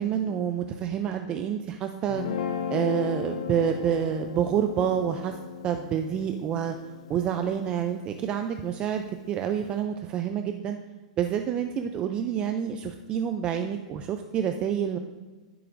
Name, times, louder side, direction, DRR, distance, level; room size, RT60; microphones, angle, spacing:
voice 1, 0.0-2.2 2.7-5.4 5.6-6.7 7.1-10.8 11.2-15.0, right 8 dB, 20° right, 6 dB, 0.4 m, -28 dB
Guitar, 2.1-8.4, left 7 dB, 55° left, 0.7 m, -36 dB
14.5 x 7.8 x 2.6 m, 1.3 s
hypercardioid pair, 160°, 4 cm